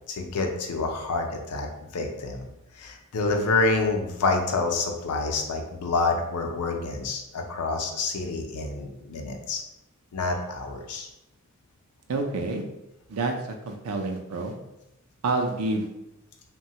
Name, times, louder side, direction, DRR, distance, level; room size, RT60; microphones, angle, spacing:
voice 1, 0.1-1.7 1.9-2.5 2.8-9.6 10.1-11.1, left 3 dB, 85° left, 3 dB, 0.5 m, -27 dB
voice 2, 12.1-12.6 13.1-14.5 15.2-15.9, right 3 dB, 75° right, 3 dB, 0.5 m, -28 dB
3.0 x 2.2 x 2.8 m, 0.91 s
head